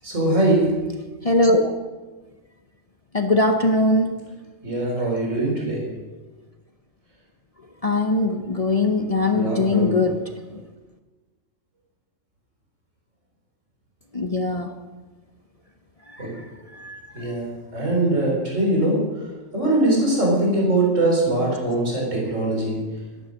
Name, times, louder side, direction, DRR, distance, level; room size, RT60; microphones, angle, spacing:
voice 1, 0.0-0.7 4.6-5.8 9.3-9.9 16.2-16.3 17.1-19.0 19.5-22.8, right 2 dB, 75° right, -2 dB, 4.4 m, -22 dB
voice 2, 1.2-1.7 3.1-4.2 7.8-10.2 14.1-14.7 16.1-16.3 16.7-17.3, left 2 dB, 35° left, 5 dB, 0.8 m, -21 dB
12.5 x 11.0 x 6.3 m, 1.2 s
omnidirectional pair, 1.3 m